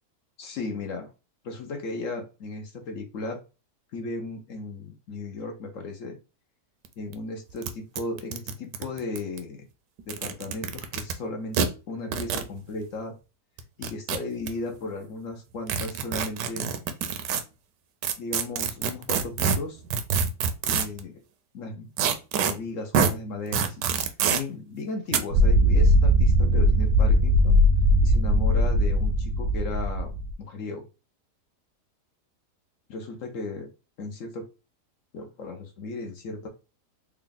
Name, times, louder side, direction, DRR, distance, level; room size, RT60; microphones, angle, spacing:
voice 1, 0.4-1.1 1.4-3.4 3.9-6.2 7.0-9.7 10.1-13.1 13.8-16.7 18.2-19.8 20.7-21.2 21.5-21.9 22.4-27.6 28.0-30.1 30.4-30.9 32.9-33.7 34.0-34.5 35.1-36.5, left 3 dB, 60° left, 4 dB, 0.9 m, -35 dB
sound 1, 6.9-7.0 7.1-7.2 7.6-7.7 8.0-9.4 10.0-11.1 11.5-11.7 12.1-12.5 13.6-14.5 15.7-17.4 18.0-21.0 22.0-22.5 22.9-23.1 23.5-24.4 25.1-25.2, right 7 dB, 85° right, 1.2 m, -26 dB
sound 2, 25.3-30.3, equal, 65° right, 0.8 m, -20 dB
3.5 x 2.3 x 3.7 m, 0.30 s
omnidirectional pair, 1.8 m